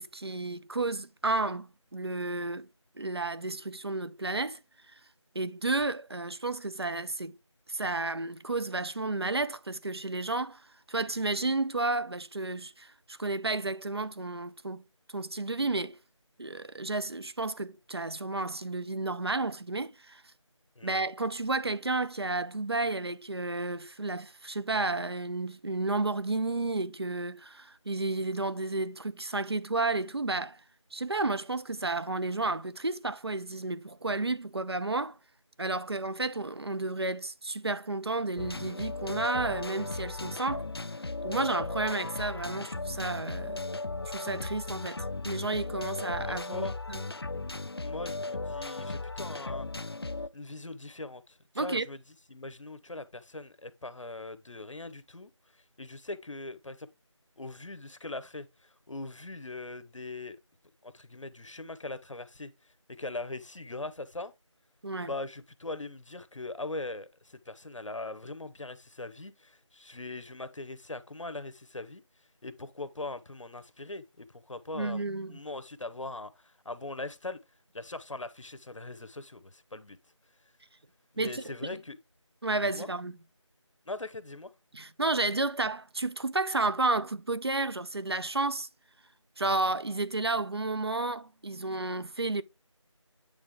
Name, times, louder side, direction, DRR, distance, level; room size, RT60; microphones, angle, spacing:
voice 1, 0.0-2.7 3.0-4.6 5.3-7.4 7.7-10.6 10.9-14.8 15.1-16.0 16.4-20.2 20.8-30.6 30.9-35.2 35.6-40.7 41.2-43.6 44.1-47.0 51.6-51.9 64.8-65.1 74.7-75.4 81.2-81.4 82.4-83.1 84.7-88.7 89.4-92.4, right 2 dB, 55° right, 0.5 m, -32 dB
sound 1, 38.4-50.3, left 3 dB, 50° left, 0.4 m, -36 dB
voice 2, 46.3-46.8 47.8-49.7 50.3-52.0 52.3-55.3 55.8-56.9 57.4-60.4 60.8-62.5 62.9-64.3 65.0-72.0 72.4-77.4 77.7-80.0 81.1-82.0 82.6-82.9 83.9-84.5, left 2 dB, 75° left, 1.0 m, -41 dB
8.8 x 3.5 x 3.6 m
figure-of-eight pair, 175°, 16 cm